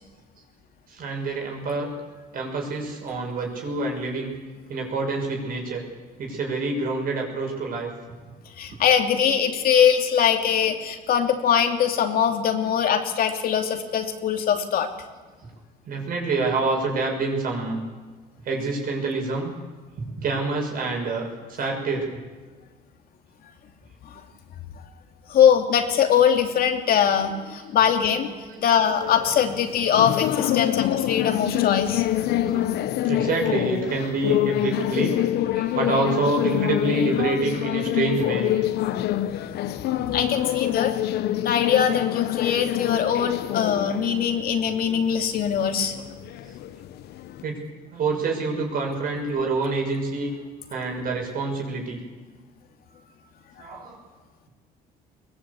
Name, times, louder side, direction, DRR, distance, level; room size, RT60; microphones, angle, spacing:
voice 1, 0.9-1.9 2.3-4.3 4.7-5.8 6.2-7.9 15.8-17.8 18.4-19.5 20.0-22.2 27.9-28.3 28.6-28.8 30.5-30.6 32.1-32.7 33.0-35.2 35.5-38.5 46.4-46.6 47.4-47.6 47.9-50.3 50.7-52.0 53.6-54.0, right 3 dB, 60° right, 1 dB, 6.7 m, -27 dB
voice 2, 8.6-14.9 25.3-28.3 28.6-32.0 40.0-40.9 41.4-45.9, left 8 dB, 60° left, 5 dB, 2.8 m, -22 dB
sound 1, 29.0-47.4, left 13 dB, 75° left, 1.1 m, -26 dB
22.0 x 20.0 x 8.4 m, 1.4 s
cardioid pair, 110°, 17 cm